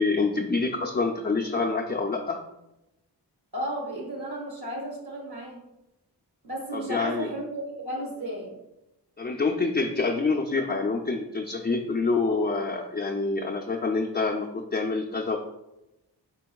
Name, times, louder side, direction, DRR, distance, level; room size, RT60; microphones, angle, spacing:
voice 1, 0.0-2.4 6.7-7.3 9.2-15.4, left 3 dB, 25° left, 1 dB, 0.4 m, -26 dB
voice 2, 3.5-5.6 6.4-8.5 12.3-12.4, right 1 dB, 70° right, -3 dB, 1.4 m, -34 dB
4.5 x 4.2 x 2.3 m, 0.91 s
wide cardioid pair, 50°, 42 cm